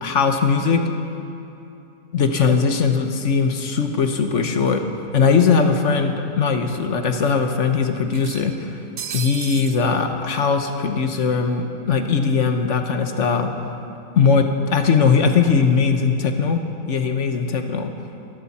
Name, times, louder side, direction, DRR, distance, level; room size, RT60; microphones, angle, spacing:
voice 1, 0.0-0.8 2.1-4.9 5.1-8.8 9.1-13.5 14.2-16.6 16.9-17.9, left 5 dB, 55° left, 6 dB, 1.3 m, -19 dB
sound 1, 4.7-4.8 5.1-5.2 6.3-6.4 6.7-6.8 8.1-9.8, right 8 dB, 60° right, 0.5 m, -34 dB
25.5 x 12.0 x 4.2 m, 2.8 s
omnidirectional pair, 1.6 m